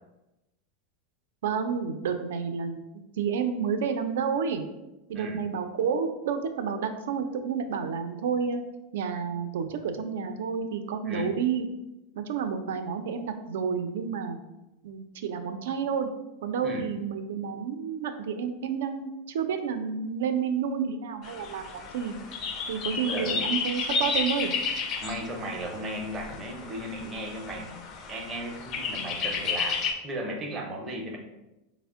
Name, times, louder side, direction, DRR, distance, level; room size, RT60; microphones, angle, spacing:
voice 1, 1.4-2.8 3.2-4.6 5.1-8.6 8.9-11.7 12.2-14.4 14.8-16.1 16.4-22.2 22.7-24.5, right 6 dB, 85° right, 7 dB, 0.4 m, -30 dB
sound 1, 21.2-29.9, left 5 dB, 30° left, 0.4 m, -32 dB
voice 2, 23.1-23.5 25.0-27.8 28.1-31.2, right 1 dB, 20° right, 1 dB, 0.5 m, -36 dB
4.2 x 2.1 x 3.5 m, 0.96 s
supercardioid pair, 170°, 0 cm